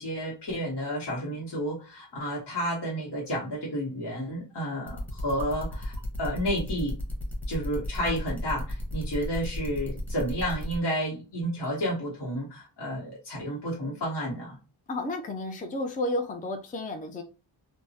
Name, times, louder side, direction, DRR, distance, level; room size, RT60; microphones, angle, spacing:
voice 1, 0.0-7.0 7.5-14.6, equal, 60° left, 1.1 m, -31 dB
sound 1, 4.9-10.8, left 1 dB, 5° left, 0.9 m, -35 dB
voice 2, 14.9-17.2, left 2 dB, 20° left, 0.4 m, -32 dB
3.4 x 2.0 x 2.7 m
wide cardioid pair, 120°, 47 cm